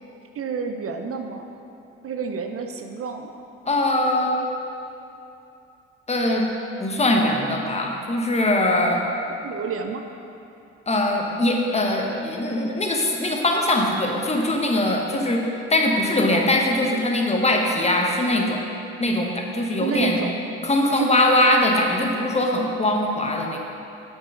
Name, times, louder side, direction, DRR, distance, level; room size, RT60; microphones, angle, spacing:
voice 1, 0.4-1.5 2.0-3.3 9.4-10.0 19.7-20.3 20.9-21.1 21.5-21.7, right 5 dB, 45° right, 5 dB, 0.6 m, -29 dB
voice 2, 3.7-4.4 6.1-6.5 6.8-9.0 10.9-15.4 15.7-18.6 19.0-20.2 20.6-23.6, left 1 dB, 20° left, 1 dB, 1.1 m, -21 dB
6.7 x 4.6 x 5.5 m, 2.8 s
supercardioid pair, 65°, 31 cm